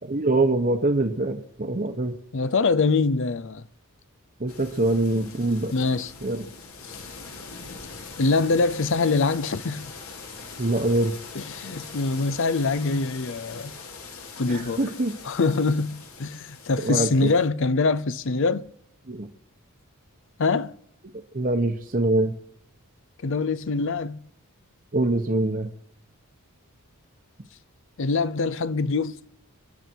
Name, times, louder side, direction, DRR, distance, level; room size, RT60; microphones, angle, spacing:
voice 1, 0.0-2.2 4.4-5.7 6.2-6.5 10.6-11.1 14.5-15.1 16.8-17.3 19.1-19.3 21.3-22.3 24.9-25.7, right 2 dB, 40° right, 1.0 m, -24 dB
voice 2, 2.3-3.6 5.7-6.1 6.8-7.0 8.2-9.9 11.3-13.7 14.4-14.8 15.2-18.7 20.4-20.8 23.2-24.3 28.0-29.2, left 3 dB, 55° left, 0.6 m, -24 dB
sound 1, 4.5-17.5, left 4 dB, 75° left, 2.7 m, -42 dB
29.0 x 10.5 x 4.6 m
head